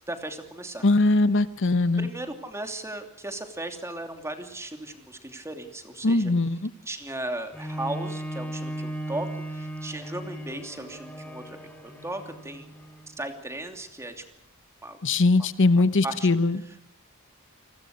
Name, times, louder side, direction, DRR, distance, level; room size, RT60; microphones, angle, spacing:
voice 1, 0.1-0.8 2.0-6.3 6.9-12.7 13.1-14.2 14.8-15.0 16.0-16.3 16.6-16.8, right 1 dB, 15° right, 6 dB, 2.8 m, -36 dB
voice 2, 0.8-2.1 6.0-6.7 15.0-16.6, left 2 dB, 60° left, 14 dB, 0.9 m, -21 dB
Bowed string instrument, 7.5-13.2 13.8-13.9, right 1 dB, 5° left, 3.6 m, -37 dB
29.0 x 20.0 x 6.5 m, 0.77 s
head